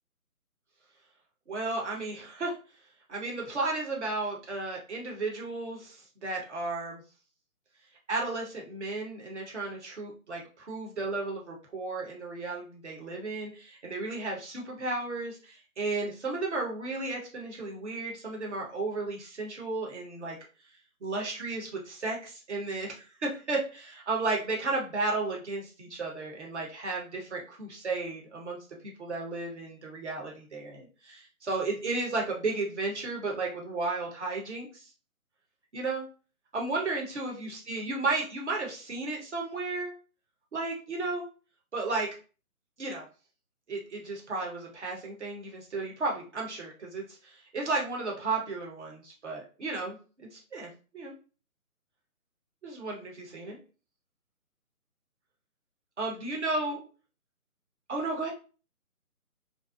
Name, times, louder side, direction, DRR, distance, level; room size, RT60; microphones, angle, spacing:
voice 1, 1.5-2.5 3.1-7.0 8.1-20.4 21.0-28.6 28.8-34.9 35.7-36.0 36.5-39.9 40.5-41.2 41.7-42.1 42.8-43.0 43.7-50.0 50.3-51.1 52.6-53.6 56.0-56.8 57.9-58.3, right 3 dB, 50° right, -1 dB, 1.0 m, -34 dB
2.6 x 2.3 x 2.4 m, 0.35 s
figure-of-eight pair, 150°, 44 cm